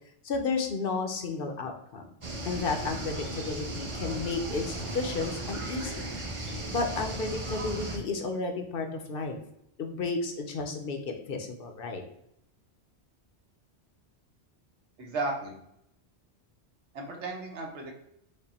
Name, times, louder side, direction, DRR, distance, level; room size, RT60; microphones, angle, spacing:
voice 1, 0.2-2.0 2.5-6.1 6.7-9.4 9.8-12.0, left 4 dB, 60° left, 5 dB, 0.8 m, -32 dB
sound 1, 2.2-8.0, right 2 dB, 35° right, 0.7 m, -36 dB
voice 2, 15.0-15.6 16.9-18.0, right 2 dB, 85° right, 1 dB, 1.2 m, -34 dB
5.2 x 2.2 x 4.1 m, 0.77 s
omnidirectional pair, 1.2 m